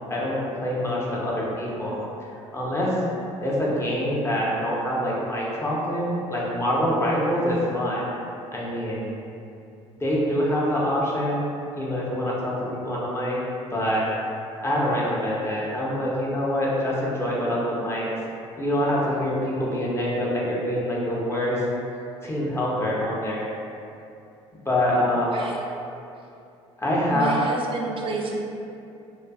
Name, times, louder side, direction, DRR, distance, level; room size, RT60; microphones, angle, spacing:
voice 1, 0.1-2.0 2.5-3.0 3.4-8.0 8.5-9.0 10.0-11.4 11.7-13.4 13.7-14.1 14.6-18.1 18.6-21.6 22.2-23.5 24.7-25.3 26.8-27.3, equal, 20° left, -5 dB, 0.7 m, -25 dB
voice 2, 25.3-25.6 27.1-28.4, right 3 dB, 40° right, 0 dB, 0.4 m, -30 dB
2.5 x 2.4 x 2.3 m, 2.7 s
hypercardioid pair, 65°, 14 cm